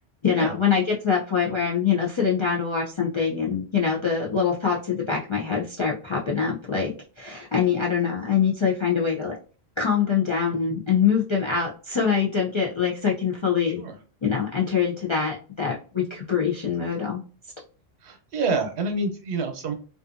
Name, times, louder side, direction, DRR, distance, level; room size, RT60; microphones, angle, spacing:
voice 1, 0.2-9.4 9.8-13.8 14.2-17.2, left 6 dB, 50° left, -4 dB, 0.3 m, -24 dB
voice 2, 18.0-19.7, right 3 dB, 80° right, 5 dB, 1.0 m, -27 dB
2.5 x 2.4 x 2.5 m, 0.38 s
omnidirectional pair, 1.1 m